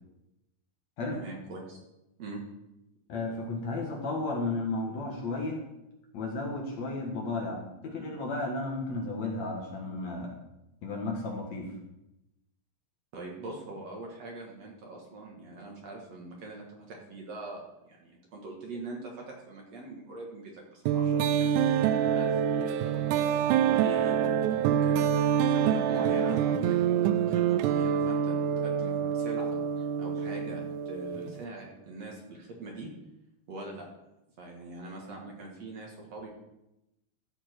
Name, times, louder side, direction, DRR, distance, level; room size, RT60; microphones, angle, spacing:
voice 1, 1.1-1.8 2.2-2.4 13.1-21.8 22.1-25.0 25.4-28.4 28.6-32.9 33.5-33.9 34.4-36.3, right 2 dB, 55° right, -1 dB, 2.6 m, -43 dB
voice 2, 3.1-5.6 6.1-10.3 10.8-11.7, left 2 dB, 60° left, -1 dB, 2.5 m, -33 dB
sound 1, 20.9-31.4, right 8 dB, 85° right, 1.8 m, -26 dB
14.0 x 7.4 x 4.5 m, 0.91 s
omnidirectional pair, 4.2 m